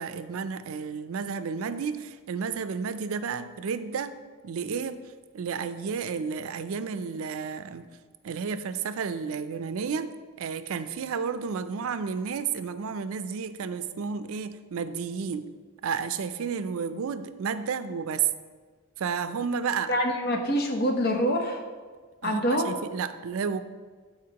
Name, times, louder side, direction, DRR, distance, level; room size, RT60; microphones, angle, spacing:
voice 1, 0.0-4.2 4.4-5.0 5.3-7.9 8.2-10.1 10.4-15.5 15.8-18.3 19.0-20.0 22.2-23.6, right 6 dB, 75° right, 11 dB, 0.4 m, -31 dB
voice 2, 19.9-21.6 22.2-22.7, equal, 45° left, 3 dB, 0.8 m, -25 dB
12.5 x 4.3 x 2.9 m, 1.5 s
head